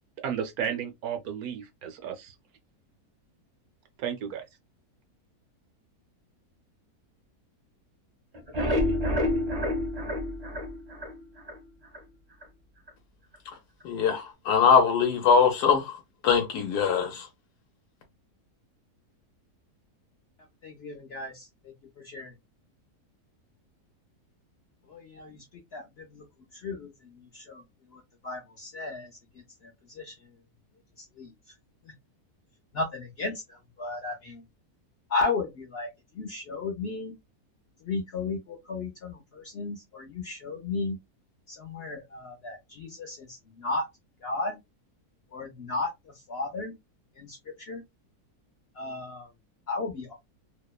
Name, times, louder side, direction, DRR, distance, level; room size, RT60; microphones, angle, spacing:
voice 1, 0.2-2.3 4.0-4.4, right 8 dB, 75° right, 1.0 m, -33 dB
sound 1, 8.3-11.6 11.9-12.0 12.4-12.5 12.9-13.0, left 1 dB, 40° right, 0.5 m, -28 dB
voice 2, 13.8-16.0 16.2-17.3, left 6 dB, 90° left, 1.2 m, -22 dB
voice 3, 20.6-22.3 24.9-25.5 25.7-26.3 26.5-27.6 27.9-29.1 29.6-30.3 31.0-31.3 32.7-34.4 35.1-35.9 36.1-37.1 37.8-41.0 41.5-43.9 44.2-44.6 45.3-46.7 47.2-47.8 48.7-49.3 49.7-50.1, left 3 dB, 65° left, 0.6 m, -34 dB
2.8 x 2.0 x 2.2 m
omnidirectional pair, 1.7 m